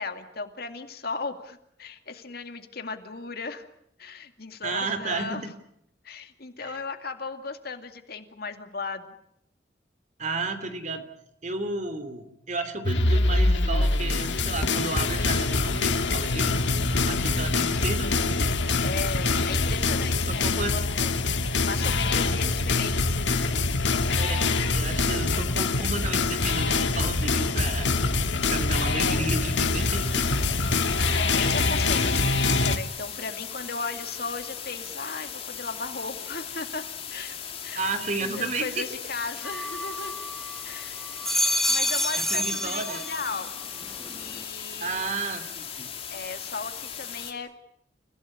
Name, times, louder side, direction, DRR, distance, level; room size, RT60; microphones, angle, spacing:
voice 1, 0.0-3.6 4.0-5.4 6.0-9.2 18.8-21.1 21.7-23.5 31.1-36.8 37.1-37.4 37.6-37.8 38.2-40.1 40.6-41.0 41.4-43.5 44.1-45.1 46.1-47.5, left 4 dB, 55° left, 7 dB, 2.3 m, -36 dB
voice 2, 4.6-5.5 6.6-6.8 10.2-11.0 11.4-16.6 17.0-18.5 20.3-20.7 24.2-27.9 28.1-30.3 37.7-38.9 41.2-41.4 42.2-43.0 44.8-45.9, right 3 dB, 40° right, 9 dB, 3.0 m, -33 dB
sound 1, 12.8-32.8, left 3 dB, 75° left, 1.8 m, -24 dB
sound 2, 29.2-47.3, left 8 dB, 35° left, 2.9 m, -38 dB
sound 3, 39.4-40.6 41.0-43.5 43.8-44.4, equal, ahead, 1.3 m, -28 dB
29.5 x 17.0 x 9.8 m, 0.75 s
head